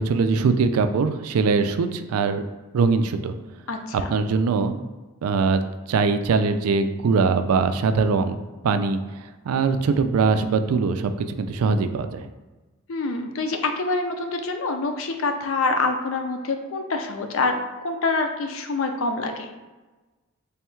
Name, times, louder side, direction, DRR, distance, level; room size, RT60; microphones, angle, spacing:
voice 1, 0.0-2.4 2.7-3.3 4.1-4.8 5.2-5.6 5.9-8.4 8.6-9.0 9.4-12.3, right 4 dB, 85° right, 9 dB, 0.3 m, -21 dB
voice 2, 3.7-4.1 12.9-17.6 17.8-19.5, left 3 dB, 65° left, 5 dB, 0.5 m, -26 dB
3.5 x 2.3 x 4.3 m, 1.2 s
head